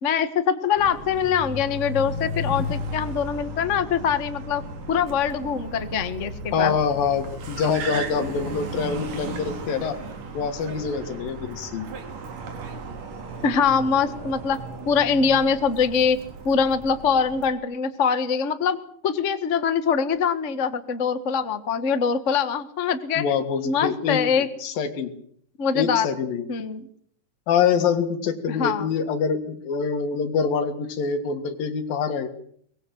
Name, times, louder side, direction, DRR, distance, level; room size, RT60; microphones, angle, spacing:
voice 1, 0.0-4.6 4.9-6.7 13.4-16.2 16.4-18.8 19.0-23.2 23.6-24.5 25.6-26.1 26.5-26.9 28.5-28.9, left 6 dB, 50° left, 10 dB, 0.8 m, -23 dB
Car, 0.8-17.5, right 1 dB, 65° right, 4.4 m, -35 dB
voice 2, 6.5-10.0 10.3-11.9 23.2-25.1 25.8-26.5 27.5-32.3, left 6 dB, 80° left, 9 dB, 3.6 m, -25 dB
23.5 x 20.5 x 7.8 m, 0.65 s
omnidirectional pair, 4.0 m